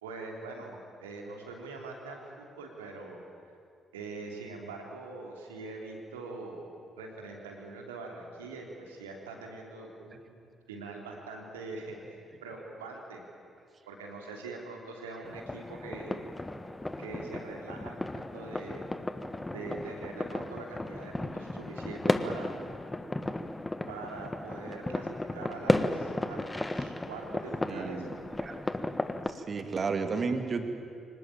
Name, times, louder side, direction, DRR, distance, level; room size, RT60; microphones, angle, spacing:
voice 1, 0.0-3.2 3.9-13.2 13.8-16.2 17.0-18.9 19.5-22.5 23.9-28.1, right 3 dB, 75° right, 1 dB, 3.1 m, -43 dB
sound 1, 15.2-29.3, left 2 dB, 15° left, 1.5 m, -34 dB
voice 2, 27.7-28.1 28.4-28.6 29.3-30.6, right 4 dB, 40° right, 7 dB, 2.5 m, -32 dB
24.5 x 19.5 x 9.1 m, 2.3 s
figure-of-eight pair, 40°, 0 cm